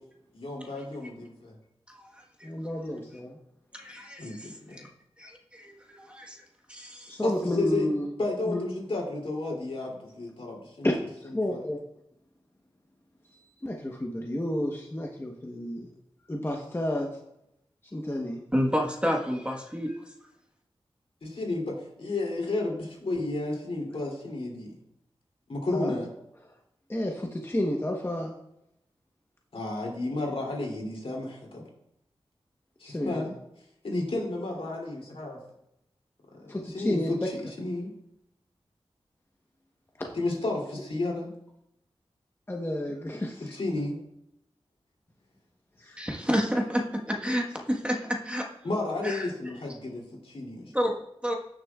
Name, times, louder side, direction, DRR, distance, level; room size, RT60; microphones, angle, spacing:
voice 1, 0.3-1.5 4.2-4.8 7.2-7.9 8.2-10.9 11.5-11.6 21.2-24.7 25.5-26.1 29.5-31.6 32.8-33.3 33.8-35.4 36.3-37.9 40.1-41.3 43.5-44.0 48.6-50.7, left 2 dB, 70° left, -2 dB, 2.8 m, -32 dB
voice 2, 1.9-2.2 3.7-4.9 5.2-6.4 6.7-7.2 18.5-20.1 46.0-48.4 49.0-49.3 50.7-50.9 51.2-51.3, equal, 10° right, 1 dB, 1.3 m, -30 dB
voice 3, 2.4-3.4 7.1-8.1 8.5-8.6 10.8-11.0 11.2-11.8 13.3-15.9 16.3-17.2 17.9-18.4 25.7-25.9 26.9-28.3 32.8-33.3 36.5-37.3 40.0-40.1 42.5-43.6 45.8-46.0, left 1 dB, 20° left, 0 dB, 1.0 m, -31 dB
16.0 x 6.4 x 2.4 m, 0.80 s
wide cardioid pair, 65°, 10 cm